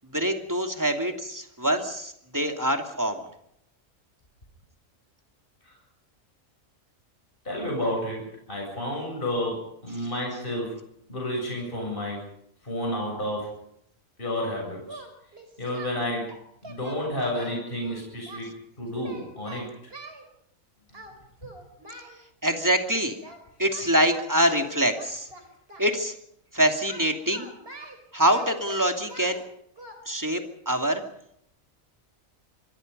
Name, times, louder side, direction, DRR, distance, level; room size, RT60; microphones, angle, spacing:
voice 1, 0.1-3.2 22.4-23.2 23.6-25.3 25.8-26.1 26.5-27.5 28.1-29.4 30.1-31.0, right 1 dB, 15° right, 4 dB, 2.6 m, -25 dB
voice 2, 7.4-10.8 11.1-12.2 12.6-13.5 14.2-15.0 15.6-16.4 16.6-18.5 18.8-19.7, left 1 dB, 40° left, -1 dB, 8.1 m, -30 dB
Singing, 14.8-15.9 16.3-18.4 18.9-20.2 20.9-21.2 21.4-22.2 23.2-23.4 23.7-25.9 26.9-29.4 29.8-29.9, right 2 dB, 45° right, 4.7 m, -44 dB
26.0 x 23.0 x 5.5 m, 0.70 s
omnidirectional pair, 1.4 m